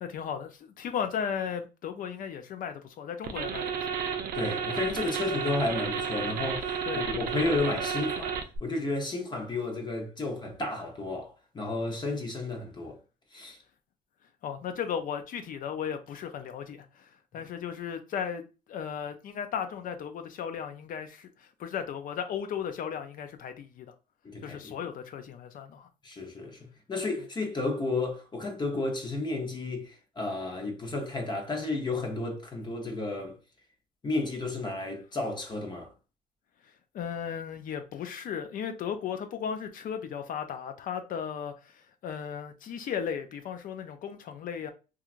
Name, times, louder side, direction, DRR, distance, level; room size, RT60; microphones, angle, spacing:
voice 1, 0.0-3.9 6.9-7.0 14.4-18.4 18.7-23.9 24.4-25.9 36.9-44.7, left 8 dB, 55° left, 0.5 m, -36 dB
sound 1, 3.2-8.6, right 7 dB, 60° right, 0.5 m, -32 dB
voice 2, 4.3-13.0 13.3-13.6 24.2-24.8 26.0-33.4 34.0-35.9, left 2 dB, 25° left, 0.8 m, -32 dB
3.0 x 2.4 x 2.4 m
cardioid pair, 110°, 17 cm